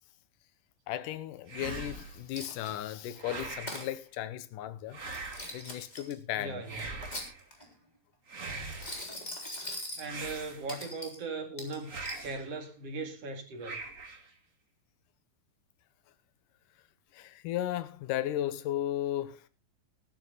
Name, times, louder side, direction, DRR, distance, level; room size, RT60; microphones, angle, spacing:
voice 1, 0.9-5.0 5.5-6.6 17.1-19.4, left 12 dB, 70° left, 2.4 m, -35 dB
sound 1, 1.5-2.3 3.2-3.9 4.9-5.7 6.6-7.4 8.3-9.1 10.0-10.9 11.8-12.5 13.6-14.3, right 3 dB, 30° right, 1.8 m, -42 dB
Coin (dropping), 2.3-2.9 3.4-3.9 5.0-6.1 6.8-7.7 8.6-10.1 10.7-11.2 11.6-12.2, left 1 dB, 10° left, 3.3 m, -41 dB
voice 2, 6.3-6.8 10.0-12.0 12.2-13.8, right 3 dB, 45° right, 3.0 m, -38 dB
14.5 x 12.5 x 4.0 m
omnidirectional pair, 4.1 m